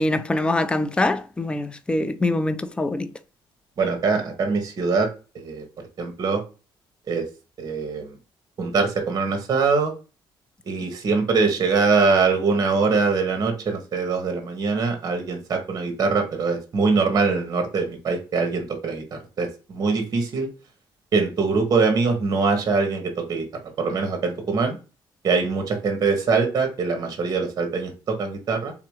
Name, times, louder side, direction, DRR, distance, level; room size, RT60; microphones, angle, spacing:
voice 1, 0.0-3.1, left 2 dB, 10° left, 0.4 m, -24 dB
voice 2, 3.8-5.1 5.3-5.6 6.0-6.4 7.1-7.2 7.6-8.2 8.6-9.9 10.7-20.5 21.1-23.4 23.8-24.8 25.2-28.7, right 4 dB, 45° right, 1.2 m, -23 dB
3.6 x 2.9 x 4.8 m
cardioid pair, 110°, 9 cm